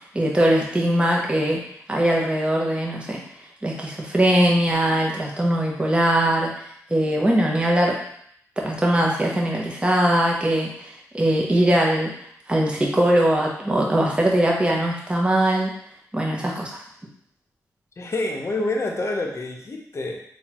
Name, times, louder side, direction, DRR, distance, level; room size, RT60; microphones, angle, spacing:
voice 1, 0.0-1.6 1.9-3.2 3.6-6.5 6.9-8.0 8.6-12.1 12.5-15.7 16.1-16.8, right 1 dB, 15° right, -2 dB, 0.8 m, -21 dB
voice 2, 18.0-20.2, left 2 dB, 45° left, 1 dB, 0.7 m, -27 dB
3.9 x 2.4 x 2.9 m, 0.70 s
supercardioid pair, 45°, 6 cm